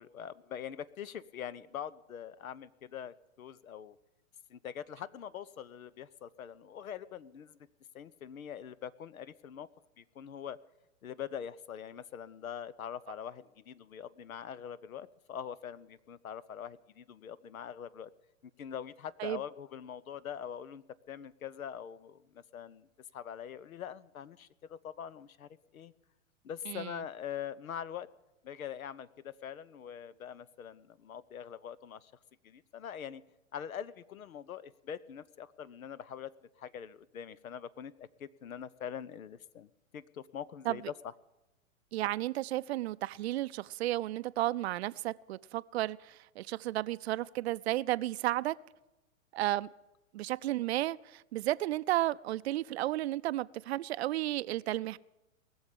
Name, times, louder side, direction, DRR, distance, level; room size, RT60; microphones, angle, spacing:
voice 1, 0.0-4.0 4.5-7.6 7.9-9.7 10.0-10.6 11.0-18.1 18.6-22.9 23.1-25.9 26.4-28.1 28.4-32.1 32.4-33.2 33.5-36.3 36.6-40.9, left 8 dB, 85° left, 0.9 m, -43 dB
voice 2, 26.7-27.0 40.7-40.8 41.9-48.5 49.3-49.7 50.1-55.0, right 15 dB, 50° right, 0.5 m, -33 dB
20.0 x 7.2 x 9.8 m
hypercardioid pair, 130°, 41 cm